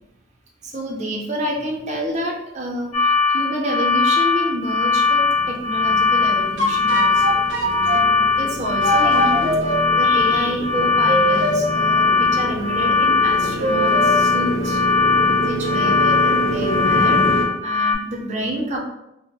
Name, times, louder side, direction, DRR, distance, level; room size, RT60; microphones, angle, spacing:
voice 1, 0.6-14.8 15.4-18.8, equal, 35° right, 0 dB, 0.5 m, -28 dB
sound 1, 2.9-17.9, left 4 dB, 25° left, 0.9 m, -19 dB
Motorcycle, 4.8-17.4, equal, 75° left, 0.8 m, -28 dB
sound 2, 6.6-8.0 8.8-9.8 11.1-11.6 13.6-14.1, right 1 dB, 75° right, 0.7 m, -22 dB
4.6 x 2.1 x 2.3 m, 0.87 s
head